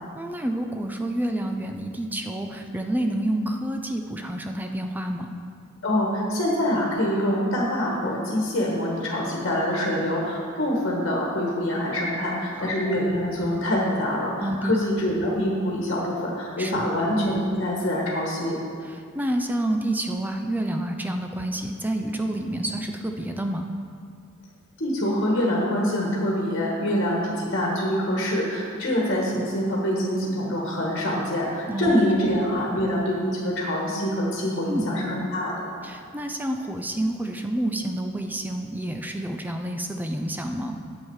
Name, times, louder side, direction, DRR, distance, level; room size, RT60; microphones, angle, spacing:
voice 1, 0.1-5.4 12.6-12.9 14.4-14.7 16.6-16.9 18.8-23.6 31.7-31.9 32.2-32.3 34.7-34.9 35.8-40.8, right 1 dB, 10° right, 4 dB, 0.5 m, -29 dB
voice 2, 5.8-18.6 24.8-35.7, equal, 50° left, -3 dB, 1.5 m, -25 dB
9.1 x 7.4 x 4.8 m, 2.3 s
head